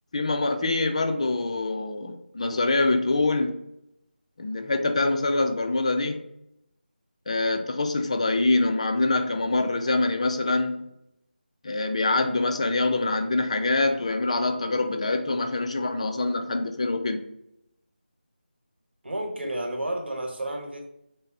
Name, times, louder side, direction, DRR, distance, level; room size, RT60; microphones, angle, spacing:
voice 1, 0.1-3.5 4.4-6.2 7.3-10.8 11.6-17.2, left 2 dB, 35° left, 7 dB, 0.4 m, -25 dB
voice 2, 19.0-20.9, right 1 dB, 80° right, 2 dB, 1.1 m, -31 dB
5.3 x 2.0 x 4.0 m, 0.80 s
figure-of-eight pair, 165°, 6 cm